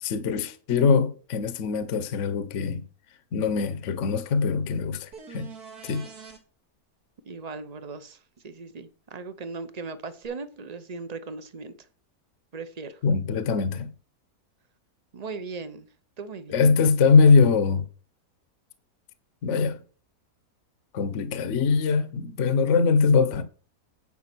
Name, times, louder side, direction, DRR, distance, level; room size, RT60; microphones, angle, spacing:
voice 1, 0.0-2.8 3.3-5.5 5.8-6.1 13.0-13.9 16.5-17.8 19.4-19.8 20.9-23.4, left 5 dB, 55° left, 1.1 m, -22 dB
sound 1, 5.1-6.4 10.2-10.3, right 6 dB, 80° right, 2.3 m, -44 dB
voice 2, 7.2-11.8 12.5-13.0 15.1-15.9 16.2-16.6, right 4 dB, 35° right, 0.7 m, -38 dB
9.7 x 5.2 x 6.0 m
omnidirectional pair, 1.6 m